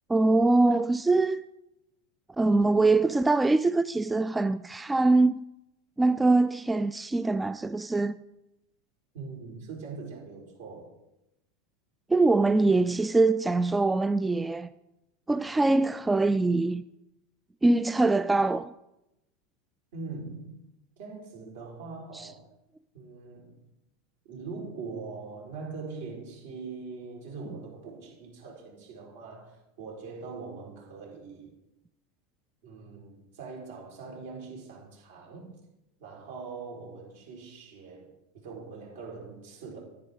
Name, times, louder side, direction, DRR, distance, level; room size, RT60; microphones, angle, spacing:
voice 1, 0.1-1.5 2.4-5.4 6.0-8.2 12.1-14.7 15.3-16.8 17.6-18.7 22.1-22.3, right 2 dB, 10° right, 0.3 m, -23 dB
voice 2, 9.1-10.9 19.9-20.5 21.0-22.4 22.9-23.5 24.3-31.5 32.6-35.6 36.0-38.1 38.4-39.8, right 4 dB, 70° right, 4.4 m, -42 dB
10.0 x 9.8 x 3.8 m
hypercardioid pair, 85°, 0 cm